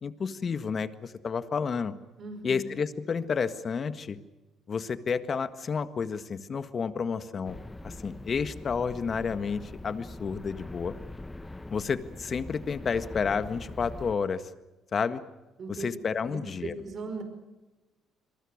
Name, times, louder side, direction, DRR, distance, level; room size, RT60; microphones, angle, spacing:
voice 1, 0.0-1.9 2.4-4.2 4.7-7.6 7.8-11.0 11.7-14.5 14.9-15.2 15.7-16.7, left 5 dB, 40° left, 11 dB, 1.7 m, -30 dB
voice 2, 2.2-2.7 15.6-15.9 16.2-17.2, right 3 dB, 45° right, 7 dB, 5.1 m, -38 dB
sound 1, 7.4-14.2, left 2 dB, 10° left, 1.1 m, -43 dB
27.5 x 23.0 x 6.6 m, 1.1 s
cardioid pair, 110°, 0 cm